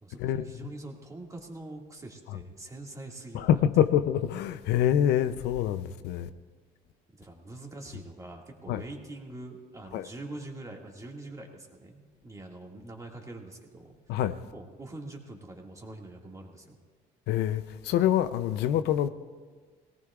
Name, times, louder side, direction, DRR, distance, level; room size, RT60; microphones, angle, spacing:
voice 1, 0.0-3.6 7.1-14.0 14.5-16.8, right 2 dB, 20° right, 2.0 m, -44 dB
voice 2, 3.3-6.3 8.7-8.8 9.9-10.1 14.1-14.4 17.3-19.1, left 10 dB, 80° left, 0.6 m, -26 dB
22.0 x 17.5 x 2.4 m
cardioid pair, 110°, 17 cm